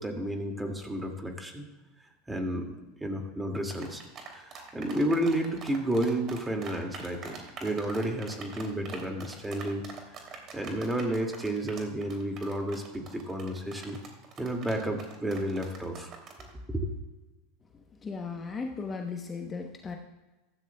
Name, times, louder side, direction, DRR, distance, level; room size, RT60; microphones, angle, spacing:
voice 1, 0.0-1.7 2.3-9.8 10.5-14.0 14.4-16.1 16.7-16.9, right 1 dB, 10° right, 3 dB, 2.1 m, -31 dB
sound 1, 3.7-16.5, right 5 dB, 40° right, 2.7 m, -44 dB
voice 2, 18.0-20.0, left 4 dB, 25° left, 3 dB, 1.0 m, -36 dB
15.0 x 13.0 x 2.3 m, 1.1 s
hypercardioid pair, 100°, 0 cm